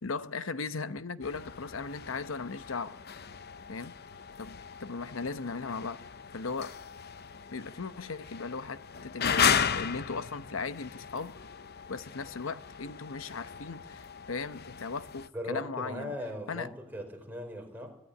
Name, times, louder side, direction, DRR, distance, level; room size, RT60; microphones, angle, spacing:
voice 1, 0.0-3.0 3.7-3.9 4.4-6.1 6.3-6.8 7.5-11.3 11.9-16.1 16.5-16.7, left 4 dB, 85° left, 0.9 m, -37 dB
sound 1, 1.2-15.3, left 7 dB, 50° left, 0.8 m, -35 dB
voice 2, 15.3-18.0, equal, 10° right, 4.6 m, -39 dB
23.5 x 13.0 x 9.9 m
head